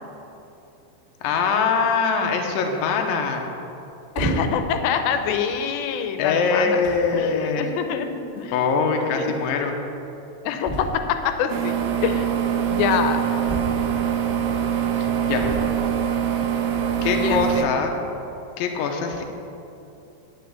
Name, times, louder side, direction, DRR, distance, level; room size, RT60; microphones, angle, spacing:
voice 1, 1.2-3.5 6.2-7.7 8.5-9.7 15.0-15.5 17.0-17.9 18.6-19.2, left 5 dB, 75° left, 3 dB, 2.3 m, -23 dB
sound 1, 4.1-4.8 5.5-5.7 6.5-6.6 6.8-7.1 8.4-8.5 8.7-8.8 9.0-9.1 10.6-11.2 13.4-14.1 15.4-16.0 17.2-17.7, right 1 dB, 20° right, 1.6 m, -30 dB
voice 2, 4.2-6.8 7.1-8.1 8.4-8.5 9.2-9.3 10.4-11.8 12.0-12.3 12.7-13.2 17.1-17.7, left 8 dB, 90° left, 8 dB, 2.9 m, -25 dB
sound 2, 11.5-17.6, right 9 dB, 85° right, 2.0 m, -24 dB
10.5 x 6.3 x 8.2 m, 2.8 s
omnidirectional pair, 4.8 m